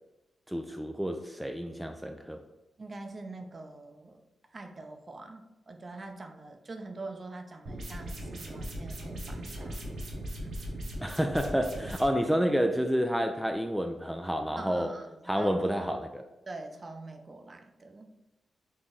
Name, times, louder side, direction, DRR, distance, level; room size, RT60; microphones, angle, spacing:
voice 1, 0.5-2.4 11.0-14.9 15.3-16.3, equal, 5° right, 5 dB, 0.4 m, -29 dB
voice 2, 2.8-4.2 4.5-10.0 10.3-10.7 14.6-15.5 16.5-18.1, right 2 dB, 40° right, 5 dB, 0.6 m, -44 dB
sound 1, 7.7-12.0, equal, 70° right, 1.1 m, -39 dB
3.9 x 3.0 x 3.9 m, 0.95 s
cardioid pair, 65°, 0 cm